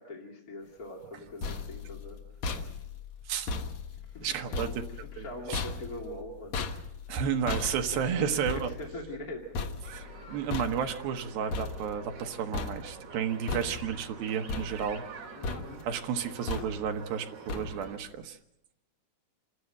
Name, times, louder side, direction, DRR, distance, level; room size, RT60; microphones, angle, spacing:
voice 1, 0.0-2.2 4.1-6.6 7.9-9.7 15.4-15.8, left 1 dB, 25° left, -1 dB, 2.3 m, -42 dB
sound 1, 1.0-12.3 12.5-13.1 13.5-14.1 14.5-15.2 15.4-16.0 16.5-17.0 17.5-18.0, left 4 dB, 60° left, 2.2 m, -37 dB
voice 2, 4.2-4.7 5.2-5.6 7.1-8.7 9.9-15.0 15.9-18.4, right 8 dB, 75° right, 6 dB, 2.8 m, -32 dB
sound 2, 9.8-18.0, right 5 dB, 50° right, 3.7 m, -47 dB
27.5 x 13.0 x 7.8 m, 0.86 s
omnidirectional pair, 4.5 m